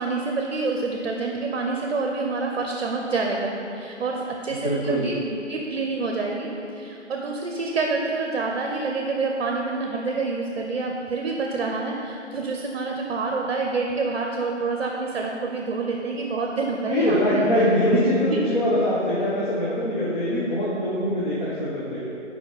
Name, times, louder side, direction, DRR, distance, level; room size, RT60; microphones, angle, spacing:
voice 1, 0.0-5.2 5.5-17.4 18.3-18.4, right 3 dB, 55° right, 1 dB, 0.6 m, -27 dB
voice 2, 4.5-5.1 16.9-22.0, left 1 dB, 40° left, -8 dB, 1.1 m, -23 dB
5.7 x 4.9 x 3.9 m, 2.8 s
hypercardioid pair, 165°, 37 cm